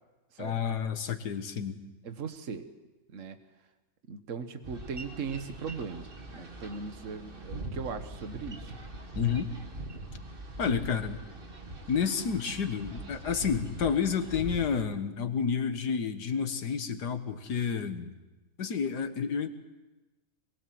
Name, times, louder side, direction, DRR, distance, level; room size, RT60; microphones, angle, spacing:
voice 1, 0.4-1.8 9.1-9.5 10.6-11.2 11.9-18.1 18.6-19.5, left 6 dB, 85° left, 8 dB, 2.0 m, -30 dB
voice 2, 2.0-2.6 3.1-3.4 4.1-8.7, right 5 dB, 50° right, 9 dB, 1.6 m, -39 dB
Boat Water vehicle, 4.6-14.8, right 1 dB, 35° right, 2.1 m, -42 dB
24.0 x 22.0 x 7.8 m, 1.1 s
omnidirectional pair, 1.7 m